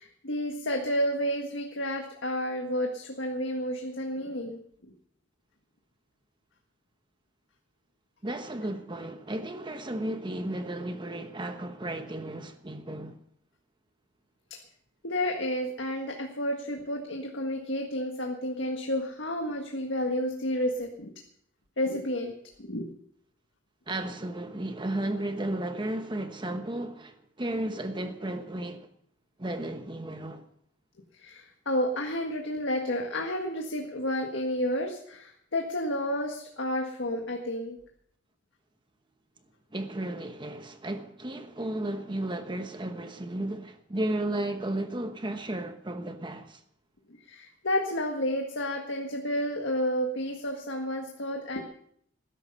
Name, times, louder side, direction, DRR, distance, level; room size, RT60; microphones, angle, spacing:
voice 1, 0.0-4.6 14.5-14.6 15.0-21.1 21.8-22.3 22.6-22.9 31.2-37.8 47.3-51.6, left 1 dB, 85° left, 1.7 m, -31 dB
voice 2, 8.2-13.2 23.9-28.9 29.4-30.4 39.7-46.6, right 1 dB, 25° right, 1.0 m, -34 dB
19.5 x 11.0 x 5.5 m
head